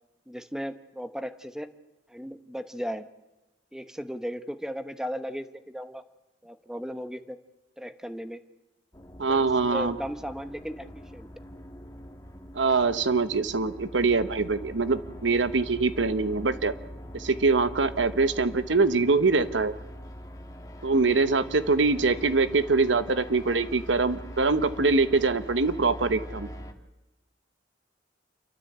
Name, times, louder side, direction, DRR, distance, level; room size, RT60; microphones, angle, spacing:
voice 1, 0.3-1.7 2.1-3.1 3.7-6.0 6.4-7.4 7.8-8.4 9.2-10.9 11.1-11.3, equal, 5° right, 10 dB, 0.9 m, -36 dB
sound 1, 8.9-26.7, equal, 20° left, 1.5 m, -43 dB
voice 2, 9.2-10.0 12.5-16.7 17.1-19.7 20.8-26.5, right 3 dB, 85° right, 12 dB, 1.1 m, -24 dB
29.0 x 13.0 x 8.0 m, 1.1 s
head